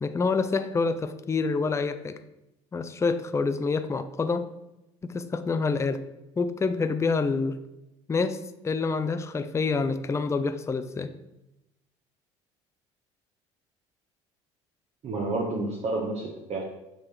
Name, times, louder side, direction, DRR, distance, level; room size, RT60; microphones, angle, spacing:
voice 1, 0.0-2.2 2.7-4.5 5.0-6.0 6.4-7.6 8.1-11.1, left 4 dB, 15° left, 10 dB, 0.5 m, -27 dB
voice 2, 15.0-16.6, right 2 dB, 45° right, 0 dB, 1.0 m, -30 dB
6.5 x 3.2 x 5.6 m, 0.92 s
hypercardioid pair, 60°, 16 cm